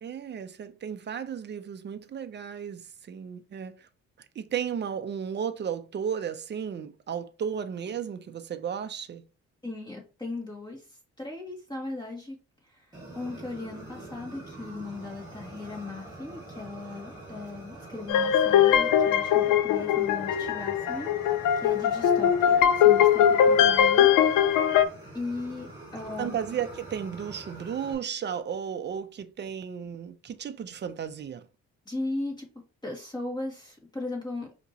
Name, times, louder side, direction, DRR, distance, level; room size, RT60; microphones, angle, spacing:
voice 1, 0.0-3.9 4.3-9.2 26.2-31.5, right 8 dB, 35° right, 0.6 m, -34 dB
voice 2, 9.6-10.9 11.2-12.4 12.6-24.8 25.1-26.4 31.9-32.5 32.8-34.5, left 2 dB, 15° left, 2.1 m, -38 dB
Fire, 12.9-27.9, right 2 dB, 15° right, 2.0 m, -45 dB
sound 1, 18.1-24.9, left 9 dB, 85° left, 0.5 m, -21 dB
5.0 x 3.0 x 2.8 m
cardioid pair, 90°, 30 cm